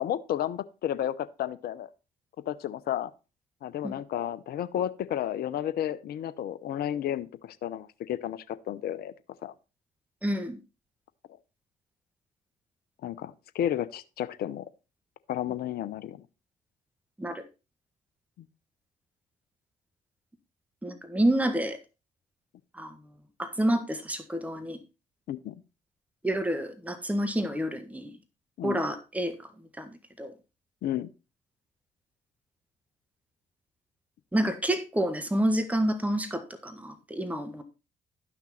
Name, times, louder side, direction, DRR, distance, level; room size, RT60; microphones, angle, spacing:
voice 1, 0.0-1.9 2.5-3.1 3.6-9.1 9.4-9.5 13.0-14.6 15.3-16.2 18.4-18.5 25.3-25.5 28.6-28.8 30.8-31.1, left 11 dB, 60° left, 0.7 m, -32 dB
voice 2, 10.2-10.6 17.2-17.4 20.8-21.8 22.7-23.0 23.4-24.8 26.2-28.1 28.6-29.3 29.8-30.3 34.3-37.6, right 1 dB, 10° right, 1.6 m, -28 dB
12.0 x 6.0 x 4.2 m
hypercardioid pair, 50°, 18 cm